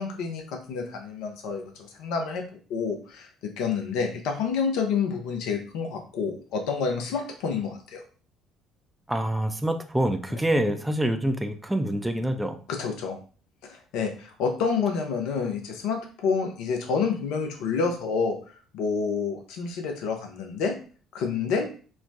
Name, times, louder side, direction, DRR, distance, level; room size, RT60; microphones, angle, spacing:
voice 1, 0.0-2.4 2.7-8.0 10.3-10.4 12.7-13.2 13.6-18.4 18.7-20.7 21.1-21.7, left 5 dB, 60° left, 4 dB, 0.5 m, -28 dB
voice 2, 9.1-12.6, right 1 dB, 10° right, 8 dB, 0.3 m, -26 dB
3.1 x 2.0 x 2.5 m, 0.39 s
figure-of-eight pair, 50°, 0 cm